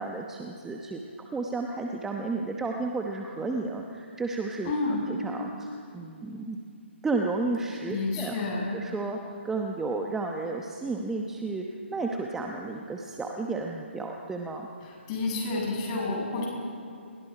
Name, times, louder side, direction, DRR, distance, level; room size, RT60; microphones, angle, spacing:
voice 1, 0.0-6.6 7.0-8.4 8.7-14.7, right 3 dB, 5° right, 1 dB, 1.0 m, -32 dB
voice 2, 4.6-5.0 7.9-8.7 15.1-16.5, left 3 dB, 30° left, -2 dB, 7.6 m, -29 dB
29.5 x 22.5 x 5.1 m, 2.5 s
figure-of-eight pair, 140°, 7 cm